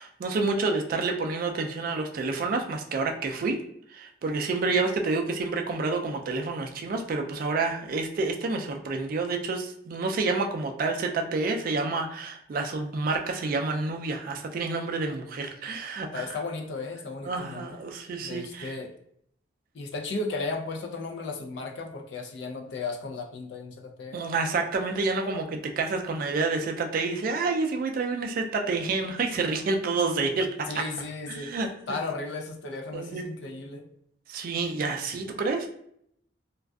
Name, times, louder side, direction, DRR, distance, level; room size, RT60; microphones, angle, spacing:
voice 1, 0.0-3.6 3.9-16.2 17.2-18.7 24.1-30.5 31.3-32.0 32.9-33.2 34.3-35.7, right 3 dB, 50° right, 4 dB, 0.3 m, -29 dB
voice 2, 16.1-17.8 18.2-18.9 19.7-24.2 30.7-31.5 31.9-33.9, left 3 dB, 65° left, 3 dB, 0.4 m, -35 dB
2.5 x 2.3 x 2.2 m, 0.69 s
head